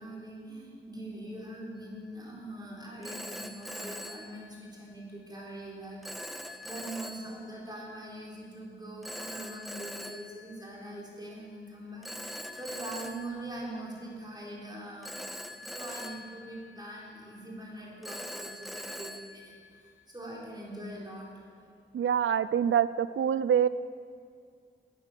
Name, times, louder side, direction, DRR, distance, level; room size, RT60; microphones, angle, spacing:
voice 1, 0.0-15.2 15.5-21.7, right 1 dB, 20° right, -4 dB, 3.8 m, -43 dB
Telephone, 1.8-2.1 3.0-5.0 6.0-7.8 9.0-11.2 12.0-14.4 15.0-17.3 18.0-20.2, equal, ahead, 0.7 m, -43 dB
voice 2, 21.9-23.7, right 8 dB, 75° right, 16 dB, 0.4 m, -25 dB
16.5 x 9.8 x 6.8 m, 2.2 s
wide cardioid pair, 105°, 20 cm